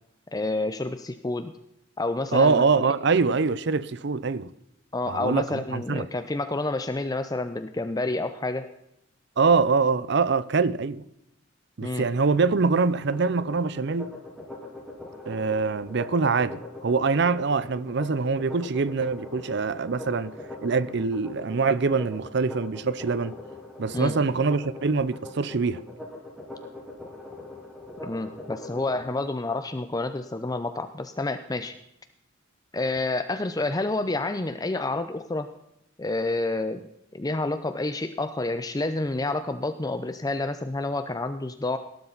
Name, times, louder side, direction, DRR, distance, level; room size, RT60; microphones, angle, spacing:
voice 1, 0.3-1.5 2.0-2.9 4.9-8.7 11.8-12.1 23.9-24.2 28.0-31.7 32.7-35.5 36.0-36.8 37.1-41.8, left 2 dB, 20° left, 0.6 m, -29 dB
voice 2, 2.3-4.5 5.1-6.1 9.4-11.0 11.8-14.1 15.3-23.4 23.8-25.8, right 4 dB, 60° right, 0.6 m, -24 dB
sound 1, 13.0-29.0, left 2 dB, ahead, 3.4 m, -41 dB
18.5 x 12.0 x 4.0 m
head